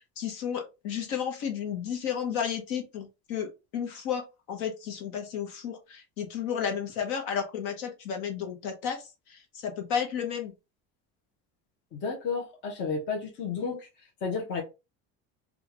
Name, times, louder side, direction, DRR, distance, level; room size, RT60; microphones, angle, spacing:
voice 1, 0.2-3.5 3.7-10.5, left 8 dB, 60° left, 1.1 m, -32 dB
voice 2, 11.9-13.9 14.2-14.6, left 5 dB, 35° left, 0.9 m, -32 dB
3.5 x 2.4 x 3.0 m
cardioid pair, 180°, 33 cm